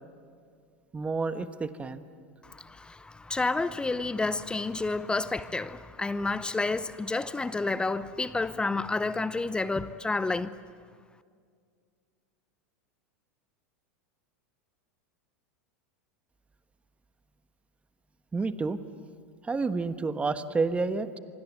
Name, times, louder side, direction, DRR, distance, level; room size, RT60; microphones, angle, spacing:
voice 1, 0.9-2.0 18.3-18.8 19.4-21.1, right 4 dB, 15° right, 1.2 m, -29 dB
voice 2, 2.4-10.5, left 3 dB, 10° left, 0.8 m, -30 dB
26.5 x 24.5 x 8.1 m
hypercardioid pair, 95°, 8 cm